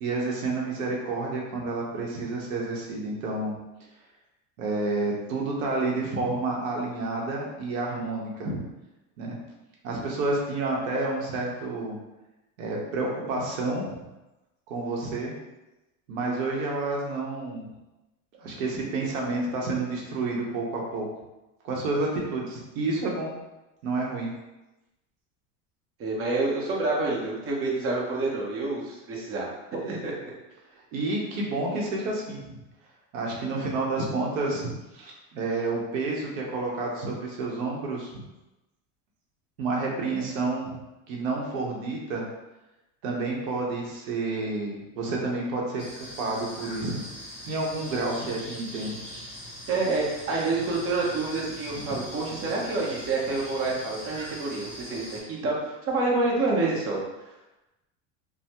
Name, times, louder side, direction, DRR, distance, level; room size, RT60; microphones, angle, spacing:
voice 1, 0.0-3.5 4.6-8.6 9.2-9.4 9.8-12.0 12.6-14.1 14.7-15.3 16.1-17.7 18.4-21.1 21.6-23.3 23.8-24.3 30.7-32.6 33.1-34.7 34.9-38.2 39.6-40.8 41.1-42.2 43.0-45.9 46.2-47.1 47.5-49.0 51.8-52.0, right 3 dB, 90° right, -2 dB, 0.8 m, -29 dB
voice 2, 26.0-30.1 49.7-55.6 55.9-57.0, right 3 dB, 35° right, -3 dB, 0.8 m, -28 dB
sound 1, 45.8-55.2, equal, 15° left, 1.4 m, -41 dB
3.2 x 2.1 x 2.9 m, 1.0 s
supercardioid pair, 115°, 39 cm